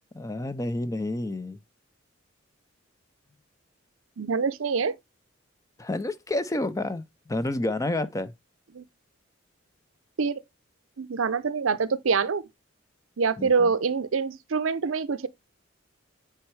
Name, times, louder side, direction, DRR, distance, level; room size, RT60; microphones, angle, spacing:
voice 1, 0.1-1.6 5.8-8.3 13.4-13.7, left 2 dB, 15° left, 0.5 m, -29 dB
voice 2, 4.2-5.0 8.7-8.8 10.2-10.4 11.0-12.5 13.2-15.3, right 5 dB, 80° right, 0.6 m, -25 dB
9.0 x 4.4 x 3.3 m
head